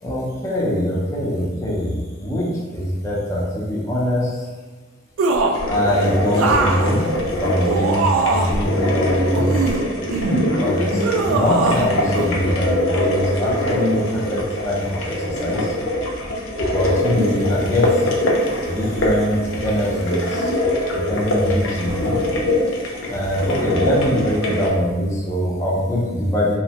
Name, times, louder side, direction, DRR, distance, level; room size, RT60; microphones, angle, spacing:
voice 1, 0.0-4.5 5.7-7.1 7.4-9.6 10.6-15.8 16.6-18.1 18.6-20.6 20.9-22.2 23.1-26.6, equal, 15° left, -5 dB, 0.5 m, -22 dB
sound 1, 5.2-5.7 6.3-8.7 9.3-10.4 11.0-11.9 12.1-12.3, right 3 dB, 85° right, 0.3 m, -21 dB
sound 2, 5.5-24.7, left 1 dB, 75° left, 0.5 m, -23 dB
2.8 x 2.1 x 2.8 m, 1.3 s
head